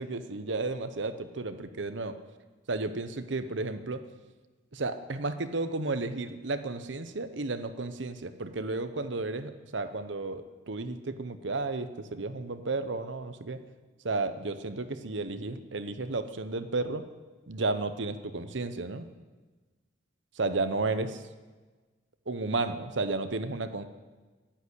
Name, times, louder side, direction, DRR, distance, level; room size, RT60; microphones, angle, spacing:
voice 1, 0.0-2.2 2.7-4.0 4.7-13.6 14.0-17.0 17.5-19.1 20.4-21.2 22.3-23.8, right 3 dB, 75° right, 10 dB, 0.9 m, -33 dB
11.0 x 10.0 x 8.3 m, 1.3 s
head